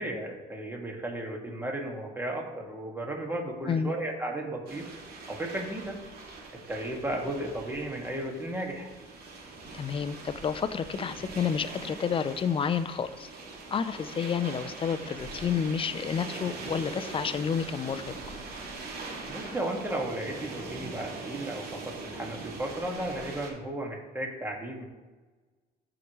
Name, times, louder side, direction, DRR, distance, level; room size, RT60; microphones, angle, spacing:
voice 1, 0.0-4.9 5.3-6.0 6.7-8.9 19.3-24.8, right 1 dB, 10° right, 0 dB, 1.9 m, -34 dB
sound 1, 4.7-23.5, right 3 dB, 65° right, 2.5 m, -42 dB
voice 2, 9.7-13.3 13.7-18.1, left 7 dB, 30° left, 12 dB, 0.6 m, -30 dB
14.0 x 4.9 x 3.1 m, 1.3 s
cardioid pair, 110°, 17 cm